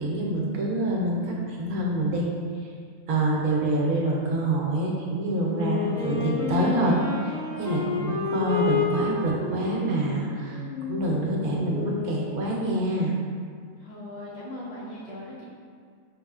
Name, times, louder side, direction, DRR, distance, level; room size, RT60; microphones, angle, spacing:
voice 1, 0.0-2.3 3.1-13.1, right 1 dB, 75° right, -3 dB, 1.1 m, -26 dB
Wind instrument woodwind instrument, 5.5-12.2, left 5 dB, 75° left, 1.7 m, -30 dB
voice 2, 13.8-15.4, left 1 dB, 55° left, -7 dB, 0.8 m, -39 dB
5.4 x 3.5 x 2.3 m, 2.1 s
omnidirectional pair, 1.6 m